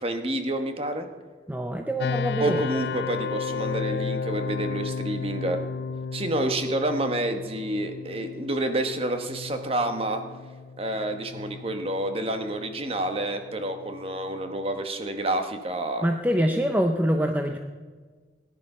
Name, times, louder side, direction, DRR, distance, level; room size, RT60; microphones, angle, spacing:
voice 1, 0.0-1.1 2.4-5.6 6.1-10.2 10.8-16.1 16.4-16.5, right 1 dB, 35° right, 6 dB, 1.2 m, -29 dB
voice 2, 1.5-2.6 16.0-17.6, equal, 10° right, 4 dB, 0.6 m, -25 dB
sound 1, 2.0-14.8, left 4 dB, 65° left, 0.4 m, -34 dB
18.0 x 10.5 x 5.5 m, 1.4 s
head